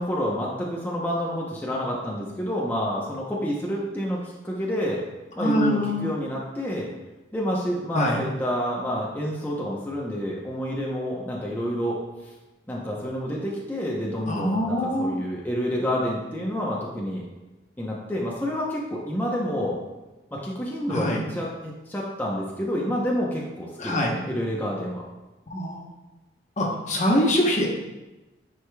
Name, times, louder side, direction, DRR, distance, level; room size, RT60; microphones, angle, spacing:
voice 1, 0.0-5.0 5.4-6.9 7.3-12.0 12.7-17.3 17.8-19.8 20.3-25.0, equal, 10° left, -4 dB, 0.8 m, -28 dB
voice 2, 5.4-6.1 7.9-8.2 14.3-15.2 20.9-21.2 23.8-24.1 25.5-25.8 26.6-27.7, left 1 dB, 40° left, 0 dB, 1.0 m, -24 dB
9.8 x 4.9 x 2.3 m, 1.1 s
head